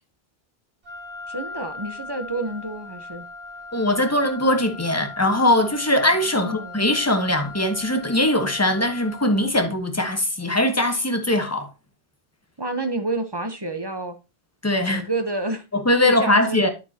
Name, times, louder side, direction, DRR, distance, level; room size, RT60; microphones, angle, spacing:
Wind instrument woodwind instrument, 0.8-9.5, left 3 dB, 60° right, 3.2 m, -39 dB
voice 1, 1.3-3.3 6.3-6.8 12.6-14.2 14.8-15.6 16.0-16.7, right 2 dB, 25° right, 0.8 m, -29 dB
voice 2, 3.7-11.7 14.6-15.0 15.7-16.7, left 1 dB, 15° left, 1.1 m, -21 dB
9.0 x 7.3 x 2.8 m
omnidirectional pair, 1.1 m